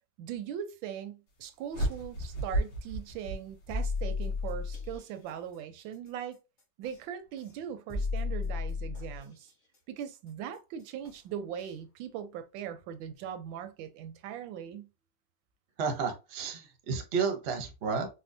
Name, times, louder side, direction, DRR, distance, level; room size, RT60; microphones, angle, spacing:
voice 1, 0.2-6.4 6.8-9.5 9.9-14.9, right 9 dB, 85° right, 1.3 m, -40 dB
sound 1, 1.7-4.1, right 1 dB, 65° left, 1.8 m, -33 dB
sound 2, 3.7-5.0 6.8-7.0 7.9-9.2 11.0-11.2 11.7-11.8, left 4 dB, 35° left, 0.7 m, -33 dB
voice 2, 15.8-18.1, right 5 dB, 55° right, 0.7 m, -31 dB
4.2 x 2.1 x 2.6 m
omnidirectional pair, 2.0 m